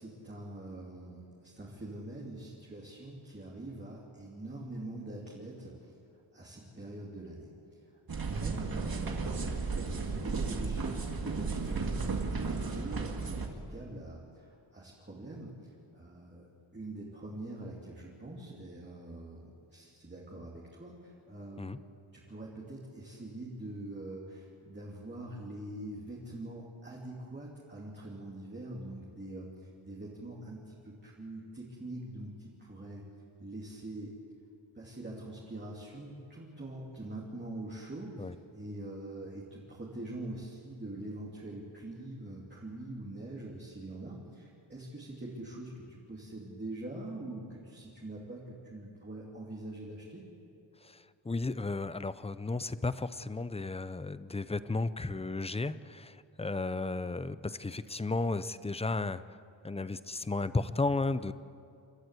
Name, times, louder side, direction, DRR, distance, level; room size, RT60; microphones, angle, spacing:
voice 1, 0.0-6.0 6.3-16.5 16.7-21.8 22.1-33.0 33.4-34.2 34.7-50.2, right 1 dB, 20° right, -4 dB, 2.7 m, -44 dB
sound 1, 8.1-13.5, right 4 dB, 45° right, 2.1 m, -34 dB
voice 2, 50.8-59.2 59.6-61.3, left 3 dB, 15° left, 14 dB, 0.4 m, -34 dB
29.5 x 13.5 x 8.2 m, 2.5 s
wide cardioid pair, 160°, 49 cm